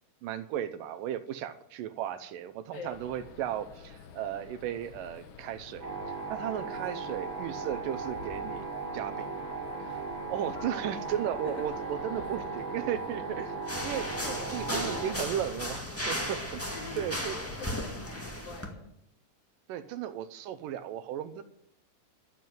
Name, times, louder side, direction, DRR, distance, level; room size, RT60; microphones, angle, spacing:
voice 1, 0.2-5.9 6.3-8.7 8.9-9.3 9.9-10.0 10.3-13.6 13.8-17.4 19.7-21.4, right 10 dB, 80° right, 10 dB, 2.4 m, -35 dB
sound 1, 2.8-18.3, left 6 dB, 60° left, 1.7 m, -50 dB
sound 2, 5.8-15.1, right 4 dB, 35° right, 4.0 m, -37 dB
sound 3, 13.7-18.7, equal, 10° left, 0.7 m, -35 dB
voice 2, 14.2-15.2 15.6-15.9 16.7-18.9, left 4 dB, 90° left, 0 dB, 4.4 m, -44 dB
13.0 x 7.5 x 9.3 m, 0.75 s
omnidirectional pair, 3.9 m